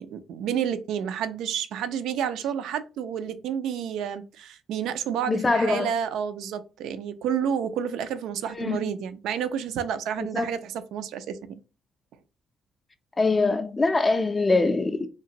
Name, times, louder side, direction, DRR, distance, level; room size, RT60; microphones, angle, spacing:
voice 1, 0.0-11.6, right 8 dB, 85° right, 0.3 m, -30 dB
voice 2, 5.3-5.9 8.5-8.8 10.2-10.5 13.2-15.1, left 3 dB, 25° left, 0.3 m, -23 dB
2.9 x 2.5 x 2.8 m
cardioid pair, 90°, 0 cm